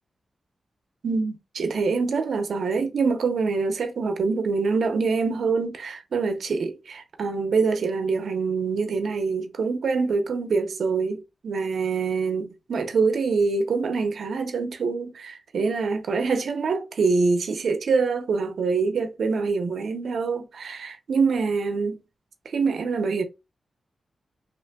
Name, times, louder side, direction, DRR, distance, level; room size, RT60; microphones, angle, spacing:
voice 1, 1.0-22.0 22.5-23.2, right 4 dB, 80° right, 0.5 m, -25 dB
2.8 x 2.5 x 2.2 m
wide cardioid pair, 90°, 0 cm